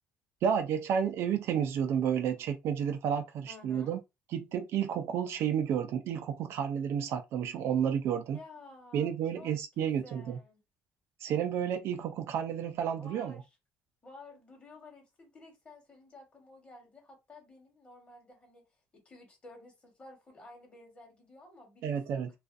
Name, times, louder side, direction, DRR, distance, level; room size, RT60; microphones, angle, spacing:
voice 1, 0.4-4.0 4.3-8.4 8.9-10.4 11.2-13.4 21.8-22.3, right 8 dB, 60° right, 0.4 m, -31 dB
voice 2, 3.5-4.0 8.3-10.6 13.0-13.5 14.0-18.6 18.9-22.4, left 2 dB, 25° left, 1.1 m, -53 dB
2.4 x 2.3 x 2.5 m
cardioid pair, 135°, 5 cm